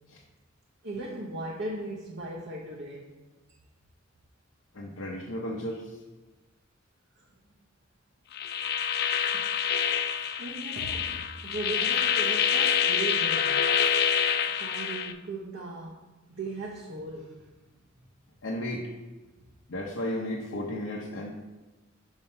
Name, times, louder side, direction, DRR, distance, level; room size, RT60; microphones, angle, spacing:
voice 1, 0.8-3.1 10.4-13.5 14.6-16.0 16.3-17.5, right 2 dB, 60° right, -4 dB, 0.9 m, -37 dB
voice 2, 4.7-6.0 9.3-9.4 18.4-18.9 19.7-21.3, left 1 dB, 75° left, -3 dB, 0.8 m, -34 dB
sound 1, 8.3-15.1, left 8 dB, 50° left, 0.4 m, -26 dB
5.6 x 4.9 x 5.6 m, 1.1 s
head